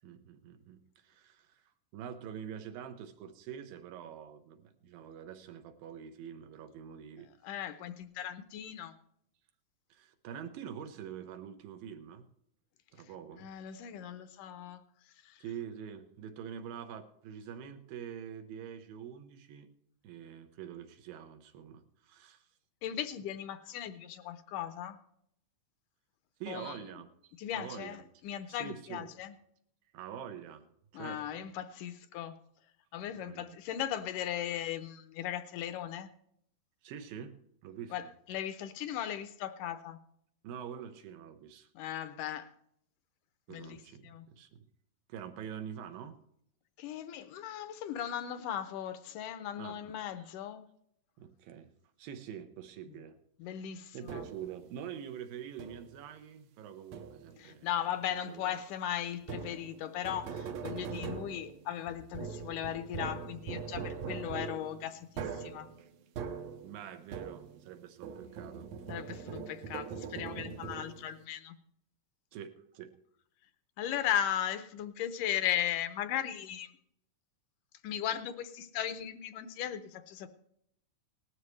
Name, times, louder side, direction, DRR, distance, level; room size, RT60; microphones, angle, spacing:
voice 1, 0.0-1.6 1.9-7.3 9.9-12.2 12.9-13.5 15.4-19.7 20.0-22.5 26.4-28.0 28.5-29.1 29.9-30.7 30.9-31.5 33.2-33.6 36.8-37.3 37.6-38.1 40.4-41.7 43.5-44.0 44.3-44.7 45.1-46.2 49.6-49.8 51.2-51.7 52.0-53.2 53.9-57.7 58.1-58.6 64.4-64.5 65.8-65.9 66.6-69.2 69.7-69.8 72.3-72.9, right 8 dB, 90° right, 7 dB, 2.8 m, -45 dB
voice 2, 7.4-9.0 13.0-13.1 13.4-14.8 15.2-15.4 22.8-25.0 26.5-26.8 27.4-29.3 30.9-32.4 32.9-36.1 37.9-40.0 41.8-42.5 43.5-44.3 46.8-50.6 52.9-53.0 53.4-54.2 57.4-65.7 68.9-71.6 73.8-76.7 77.8-80.3, left 10 dB, 80° left, 11 dB, 2.1 m, -37 dB
sound 1, 54.1-54.6 55.6-56.1 56.9-57.5 59.2-67.7 68.0-71.2, right 6 dB, 70° right, 1.6 m, -42 dB
18.5 x 13.0 x 3.2 m, 0.71 s
omnidirectional pair, 4.0 m